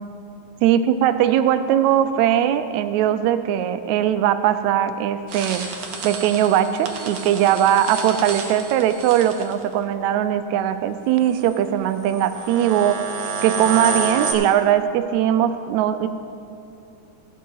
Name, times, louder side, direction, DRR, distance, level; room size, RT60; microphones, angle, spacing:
voice 1, 0.6-5.7 6.0-16.1, right 10 dB, 80° right, 11 dB, 1.8 m, -20 dB
sound 1, 5.3-9.6 11.3-11.5 12.1-14.3, right 5 dB, 60° right, 1.3 m, -30 dB
15.0 x 7.2 x 5.4 m, 2.7 s
omnidirectional pair, 3.4 m